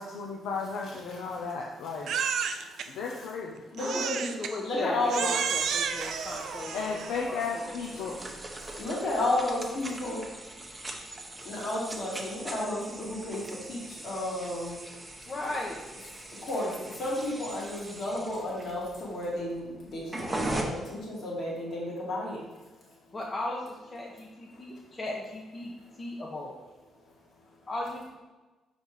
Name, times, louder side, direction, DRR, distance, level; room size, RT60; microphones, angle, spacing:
voice 1, 0.0-2.1 2.9-3.6 6.7-8.4, left 4 dB, 85° left, -1 dB, 0.7 m, -34 dB
voice 2, 0.8-1.4 1.8-2.1 2.4-3.3 3.7-4.3 4.6-5.3 5.6-6.8 7.9-10.3 11.0-15.3 16.2-23.2 24.5-24.7 25.6-26.2 26.9-27.7, left 1 dB, 60° left, -5 dB, 2.1 m, -34 dB
Crying sobbing, 2.1-2.9 3.8-4.6 5.1-7.2, right 7 dB, 70° right, 0.5 m, -31 dB
voice 3, 3.8-7.6 7.9-8.0 15.2-15.8 23.1-25.7 26.0-26.5 27.7-28.1, left 2 dB, 30° left, -3 dB, 0.9 m, -37 dB
sound 1, 5.5-20.6, right 2 dB, 15° right, 0.9 m, -41 dB
5.4 x 4.1 x 4.8 m, 1.2 s
cardioid pair, 90°, 0 cm